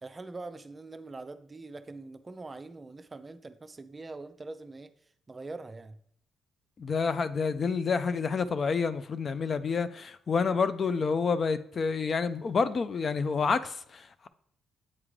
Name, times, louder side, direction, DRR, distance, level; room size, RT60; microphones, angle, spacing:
voice 1, 0.0-4.9 5.3-6.0, right 3 dB, 25° right, 0.4 m, -43 dB
voice 2, 6.8-14.3, left 5 dB, 45° left, 0.3 m, -28 dB
8.6 x 3.7 x 3.1 m
cardioid pair, 90°, 0 cm